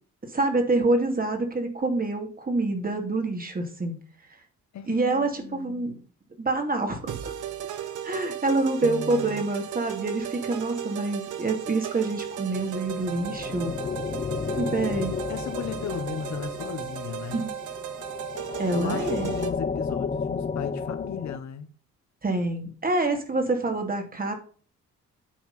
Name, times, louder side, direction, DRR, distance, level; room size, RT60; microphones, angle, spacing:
voice 1, 0.3-4.0 4.9-6.0 6.4-7.3 8.0-13.7 14.6-15.1 17.3-17.5 18.6-19.3 22.2-24.3, right 2 dB, 30° right, 2.5 m, -26 dB
voice 2, 4.7-6.0 8.8-9.5 14.5-14.6 15.3-17.4 18.7-21.7, left 8 dB, 65° left, 1.3 m, -35 dB
sound 1, 7.1-19.5, right 10 dB, 80° right, 1.2 m, -36 dB
sound 2, 12.5-21.4, left 5 dB, 25° left, 0.6 m, -33 dB
8.9 x 4.7 x 5.5 m
cardioid pair, 90°, 30 cm